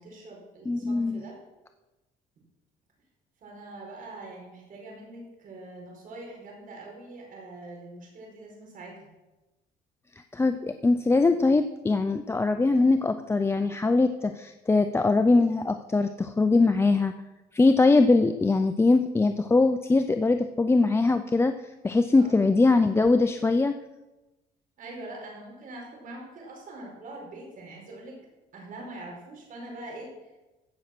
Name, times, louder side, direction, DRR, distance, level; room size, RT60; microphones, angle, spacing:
voice 1, 0.0-1.4 3.4-9.1 22.2-22.4 24.8-28.2 28.5-30.3, right 2 dB, 55° right, -1 dB, 4.9 m, -43 dB
voice 2, 0.7-1.2 10.3-17.1 17.5-21.6 21.8-23.8, left 3 dB, 15° left, 8 dB, 0.5 m, -22 dB
15.5 x 6.3 x 6.0 m, 1.1 s
cardioid pair, 110°, 17 cm